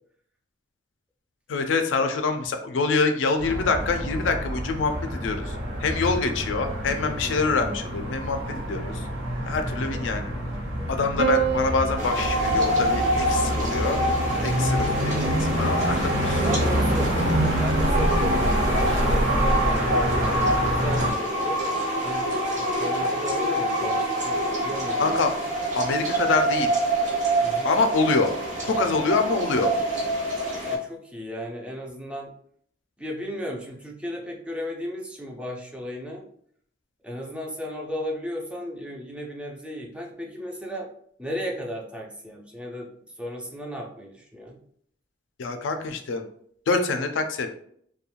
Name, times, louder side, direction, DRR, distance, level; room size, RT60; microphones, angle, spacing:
voice 1, 1.5-5.5 5.8-9.0 9.5-10.3 10.9-14.0 14.4-16.4 25.0-25.5 25.7-26.7 27.6-28.3 28.7-29.7 45.4-46.2 46.7-47.5, left 4 dB, 75° left, 6 dB, 0.4 m, -25 dB
sound 1, 3.4-21.1, equal, 65° right, 1.1 m, -27 dB
voice 2, 7.0-7.4 14.1-14.3 16.4-18.4 18.7-21.6 22.0-25.2 27.4-27.8 30.7-32.3 33.0-36.2 37.0-40.9 41.2-42.9 43.2-44.6, equal, 5° right, 0 dB, 0.3 m, -35 dB
Piano, 11.2-15.6 16.8-17.5, right 7 dB, 85° right, 0.4 m, -31 dB
sound 2, 12.0-30.8, right 1 dB, 40° right, 0.7 m, -26 dB
2.4 x 2.2 x 2.9 m, 0.64 s
head